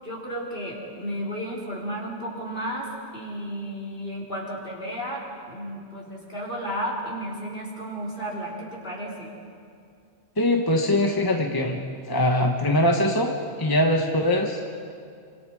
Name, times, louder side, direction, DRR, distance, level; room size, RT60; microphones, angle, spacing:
voice 1, 0.0-9.3, equal, 55° left, -4 dB, 4.6 m, -33 dB
voice 2, 10.4-13.3 13.6-14.6, left 1 dB, 20° left, 2 dB, 1.3 m, -22 dB
26.5 x 25.5 x 4.9 m, 2.4 s
omnidirectional pair, 1.1 m